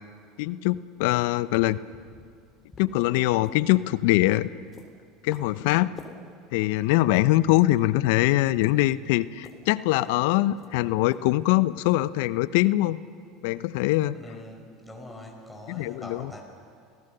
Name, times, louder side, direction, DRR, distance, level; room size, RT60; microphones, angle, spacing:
voice 1, 0.4-1.8 2.8-4.5 5.2-5.9 6.5-13.0 13.4-14.2 15.7-16.3, left 17 dB, 70° left, 17 dB, 0.6 m, -23 dB
sound 1, 2.6-11.8, left 4 dB, 35° left, 3.5 m, -53 dB
voice 2, 14.1-16.4, left 1 dB, 5° left, -1 dB, 5.1 m, -43 dB
29.5 x 17.0 x 6.7 m, 2.3 s
hypercardioid pair, 85°, 0 cm